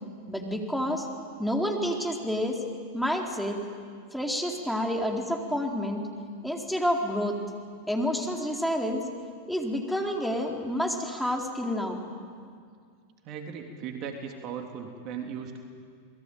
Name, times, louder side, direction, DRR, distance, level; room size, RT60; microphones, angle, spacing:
voice 1, 0.3-1.1 1.4-2.6 2.9-3.6 4.1-6.0 6.4-7.4 7.9-9.0 9.5-12.0, equal, ahead, 1 dB, 4.1 m, -29 dB
voice 2, 13.2-15.6, right 7 dB, 45° right, 3 dB, 3.2 m, -37 dB
28.5 x 21.5 x 9.3 m, 2.1 s
hypercardioid pair, 95°, 0 cm